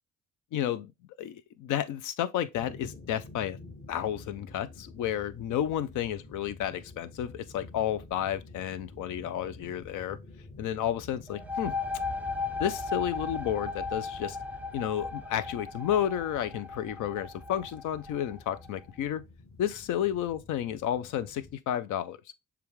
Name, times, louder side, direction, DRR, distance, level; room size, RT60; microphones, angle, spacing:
voice 1, 0.5-0.9 1.2-3.6 3.9-10.2 10.6-11.7 12.6-14.4 14.7-19.2 19.6-22.2, left 10 dB, 80° left, 0.6 m, -31 dB
sound 1, 2.5-21.6, left 3 dB, 45° left, 1.9 m, -50 dB
sound 2, 11.3-18.7, left 4 dB, 5° right, 0.4 m, -36 dB
6.8 x 2.4 x 3.1 m
cardioid pair, 90°, 30 cm